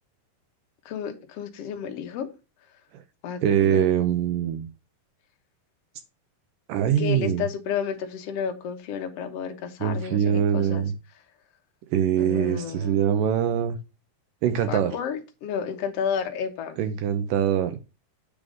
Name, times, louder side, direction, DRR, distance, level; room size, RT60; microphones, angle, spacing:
voice 1, 0.8-2.3 3.2-3.9 7.0-10.8 12.2-13.1 14.7-16.8, left 7 dB, 75° left, 1.4 m, -31 dB
voice 2, 3.4-4.7 6.7-7.5 9.8-10.9 11.9-13.8 14.4-15.0 16.8-17.8, right 9 dB, 80° right, 2.0 m, -23 dB
8.7 x 3.7 x 6.3 m
omnidirectional pair, 4.6 m